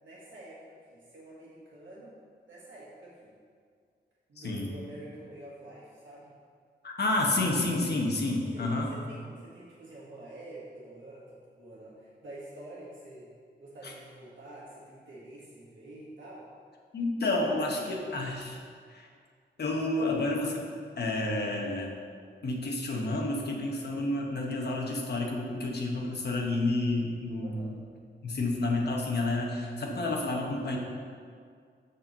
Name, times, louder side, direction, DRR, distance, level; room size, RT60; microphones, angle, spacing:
voice 1, 0.0-2.2 2.4-3.3 4.3-6.3 8.5-13.3 13.6-16.4 27.4-27.8, right 1 dB, 80° right, -7 dB, 1.5 m, -47 dB
voice 2, 6.8-8.9 13.8-13.9 16.9-18.6 18.9-19.1 19.6-20.6 21.0-21.9 22.4-27.8 28.2-30.8, left 2 dB, 60° left, 0 dB, 1.1 m, -30 dB
6.5 x 4.5 x 6.6 m, 2.1 s
wide cardioid pair, 180°, 19 cm